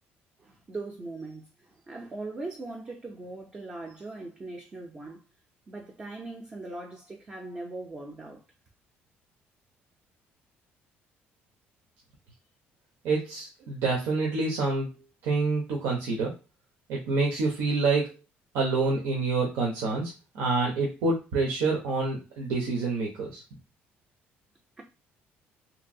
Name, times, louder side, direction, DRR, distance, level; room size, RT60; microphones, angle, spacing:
voice 1, 0.4-5.2 5.7-8.4 24.8-24.9, right 2 dB, 20° right, 0.4 m, -40 dB
voice 2, 13.0-15.0 15.2-16.3 16.9-18.1 18.5-23.4, right 3 dB, 85° right, 0.8 m, -27 dB
2.9 x 2.7 x 2.6 m
cardioid pair, 180°, 4 cm